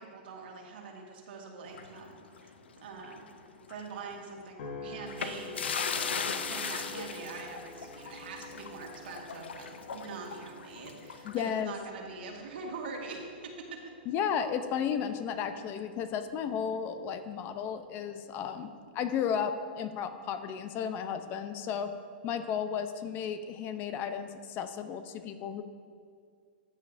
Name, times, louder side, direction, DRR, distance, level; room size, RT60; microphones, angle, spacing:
voice 1, 0.0-3.3 3.7-5.8 6.5-13.9, right 4 dB, 65° right, 0 dB, 1.8 m, -44 dB
sound 1, 1.7-3.3 3.6-3.8 5.1-11.6, left 6 dB, 85° left, 0.6 m, -38 dB
sound 2, 4.6-19.1 19.6-20.0, left 2 dB, 65° left, 1.1 m, -50 dB
voice 2, 11.2-11.7 14.1-21.9 22.2-25.6, left 7 dB, 35° left, 9 dB, 0.6 m, -33 dB
14.0 x 7.4 x 2.6 m, 2.2 s
hypercardioid pair, 120°, 6 cm